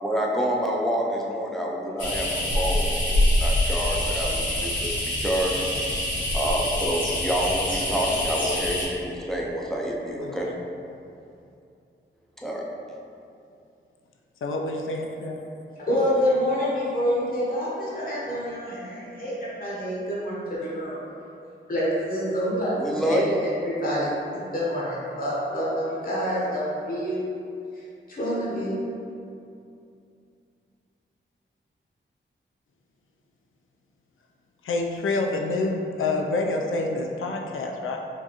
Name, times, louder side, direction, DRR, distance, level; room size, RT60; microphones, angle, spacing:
voice 1, 0.0-5.6 6.3-10.5 12.4-12.6 22.8-23.2, equal, ahead, -3 dB, 0.4 m, -28 dB
sound 1, 2.0-8.9, left 1 dB, 70° left, 1.2 m, -25 dB
voice 2, 10.2-10.5 14.4-15.4 34.6-38.0, left 2 dB, 85° left, 1 dB, 0.4 m, -28 dB
voice 3, 15.7-21.0 21.7-27.2 28.1-28.8, equal, 45° left, -6 dB, 0.8 m, -27 dB
4.4 x 2.5 x 2.9 m, 2.5 s
wide cardioid pair, 140°, 20 cm